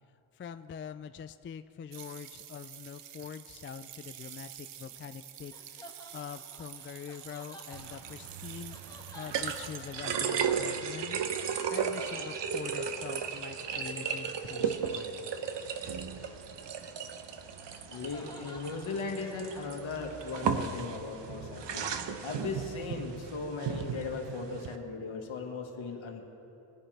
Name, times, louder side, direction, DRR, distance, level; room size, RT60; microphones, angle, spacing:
voice 1, 0.3-8.8 9.1-11.2 11.7-15.1, left 7 dB, 30° left, 11 dB, 0.3 m, -44 dB
sound 1, 1.9-10.4, right 11 dB, 85° right, 0.8 m, -49 dB
sound 2, 4.8-14.6 15.6-15.9 16.3-20.9, left 1 dB, 10° left, 1.8 m, -53 dB
sound 3, 7.7-24.8, right 6 dB, 60° right, 0.9 m, -35 dB
voice 2, 17.9-26.2, left 4 dB, 65° left, 2 dB, 1.8 m, -38 dB
20.5 x 9.8 x 3.4 m, 2.9 s
cardioid pair, 70°, 50 cm